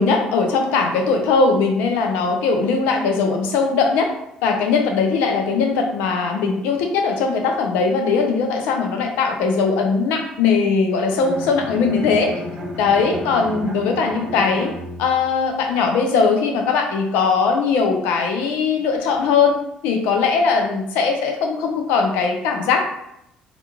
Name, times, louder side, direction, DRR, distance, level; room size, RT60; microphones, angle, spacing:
voice 1, 0.0-4.1 4.4-12.3 12.8-14.7 15.0-19.6 19.8-22.8, left 4 dB, 90° left, 3 dB, 0.5 m, -19 dB
Bowed string instrument, 11.1-15.4, equal, 25° right, 0.6 m, -33 dB
2.4 x 2.3 x 2.9 m, 0.77 s
cardioid pair, 95°, 3 cm